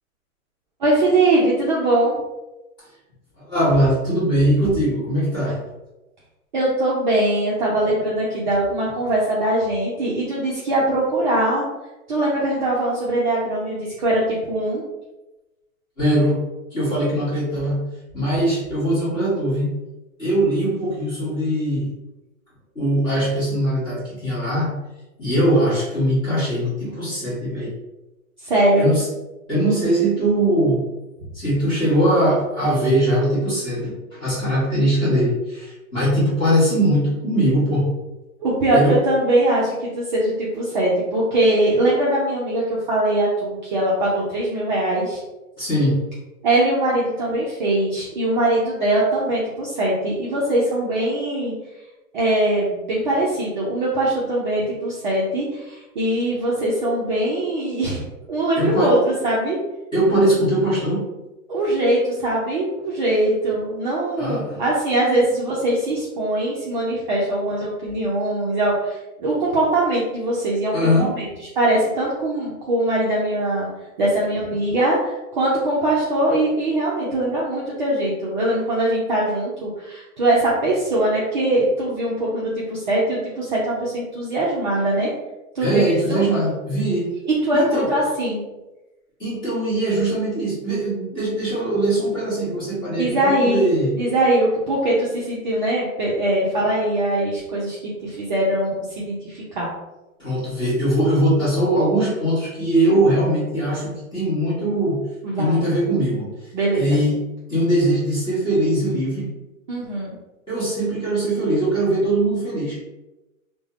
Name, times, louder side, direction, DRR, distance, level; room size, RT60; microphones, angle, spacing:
voice 1, 0.8-2.2 6.5-11.6 12.1-14.8 28.4-28.9 38.4-45.2 46.4-51.5 52.1-59.6 61.5-73.7 74.0-85.1 85.5-85.8 86.1-86.2 87.3-88.4 93.0-99.7 105.2-105.7 106.5-107.0 109.7-110.1, right 1 dB, 35° right, -6 dB, 0.4 m, -21 dB
voice 2, 3.4-5.6 16.0-16.4 16.7-17.9 18.1-19.7 20.2-21.9 22.7-24.7 25.2-27.7 28.8-29.0 29.5-30.8 31.3-37.9 38.7-38.9 45.6-46.0 58.6-58.9 59.9-61.0 64.2-64.6 70.7-71.1 85.6-87.1 87.5-87.9 89.2-93.9 100.2-105.0 105.3-106.3 106.8-107.2 107.5-109.3 110.5-112.8, right 1 dB, 10° left, -10 dB, 1.0 m, -21 dB
3.2 x 2.1 x 2.3 m, 1.0 s
hypercardioid pair, 150°, 43 cm